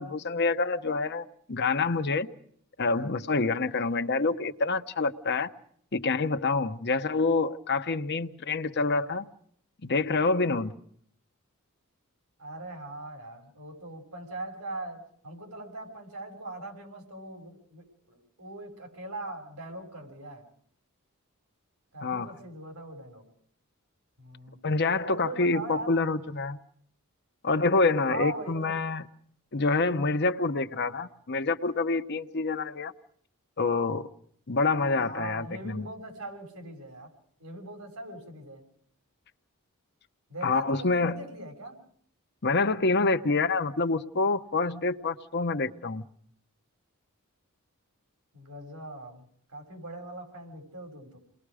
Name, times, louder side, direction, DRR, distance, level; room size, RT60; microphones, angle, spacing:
voice 1, 0.0-2.3 2.8-5.5 5.9-9.2 9.8-10.7 22.0-22.3 24.6-26.6 27.4-29.0 29.5-32.9 33.6-34.1 34.5-35.9 40.4-41.2 42.4-46.0, left 3 dB, 50° left, 9 dB, 1.0 m, -27 dB
voice 2, 12.4-20.5 21.9-23.3 24.2-24.6 25.0-25.9 28.1-28.8 34.8-37.1 37.4-38.6 40.3-41.8 48.3-51.2, right 2 dB, 85° right, 4 dB, 6.8 m, -40 dB
29.5 x 21.0 x 5.0 m, 0.63 s
head